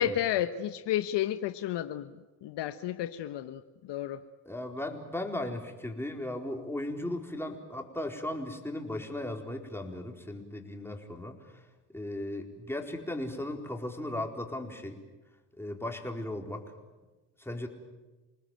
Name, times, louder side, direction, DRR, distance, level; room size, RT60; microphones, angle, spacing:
voice 1, 0.0-2.1 2.4-4.2, left 11 dB, 60° left, 10 dB, 1.2 m, -31 dB
voice 2, 4.4-11.6 11.9-15.0 15.6-16.6 17.4-17.7, left 1 dB, 5° left, 3 dB, 4.4 m, -36 dB
28.0 x 19.5 x 9.2 m, 1.2 s
hypercardioid pair, 70°, 48 cm